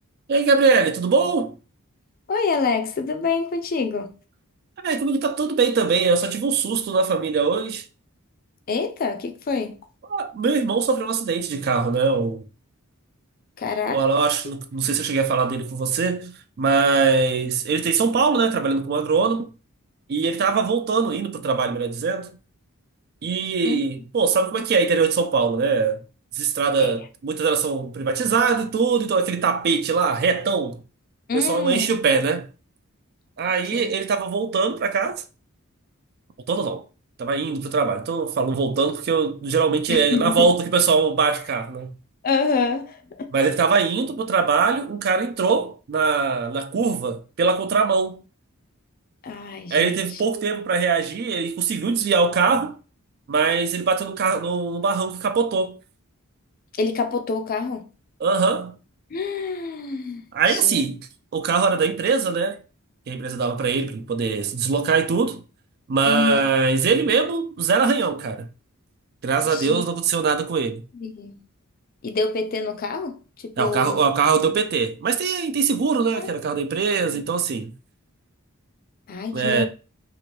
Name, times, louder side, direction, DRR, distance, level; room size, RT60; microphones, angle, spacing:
voice 1, 0.3-1.5 4.8-7.8 10.1-12.4 13.9-19.5 20.1-22.4 23.2-26.0 26.3-30.8 31.3-32.5 33.4-35.2 36.5-36.8 37.2-41.9 43.3-48.2 49.7-52.8 53.3-55.8 58.2-58.8 60.3-61.0 61.3-62.6 63.1-65.4 65.9-68.5 69.2-70.8 73.6-77.7 79.3-79.7, right 5 dB, 45° right, 0.3 m, -22 dB
voice 2, 2.3-4.1 8.7-9.8 13.6-14.0 23.6-23.8 26.8-26.9 31.3-32.0 33.7-33.9 34.4-34.5 39.9-40.5 42.2-43.3 49.2-50.2 56.8-57.9 59.1-60.9 66.0-66.5 69.5-69.8 70.9-71.4 72.0-73.2 73.4-74.0 74.4-74.5 76.1-76.3 77.1-77.2 79.1-79.7, left 4 dB, 40° left, 0.4 m, -26 dB
2.9 x 2.5 x 3.1 m
head